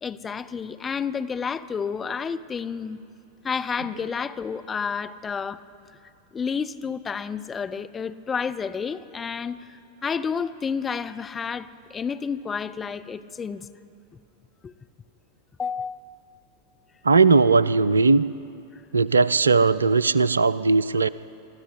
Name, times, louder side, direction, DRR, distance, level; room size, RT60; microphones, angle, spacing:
voice 1, 0.0-3.0 3.4-5.6 6.3-9.6 10.0-13.7 14.6-14.7 15.6-16.2, left 6 dB, 20° left, 10 dB, 0.7 m, -30 dB
voice 2, 17.0-18.2 18.9-21.1, right 4 dB, 75° right, 18 dB, 0.5 m, -18 dB
23.5 x 13.5 x 9.6 m, 2.6 s
figure-of-eight pair, 90°, 0 cm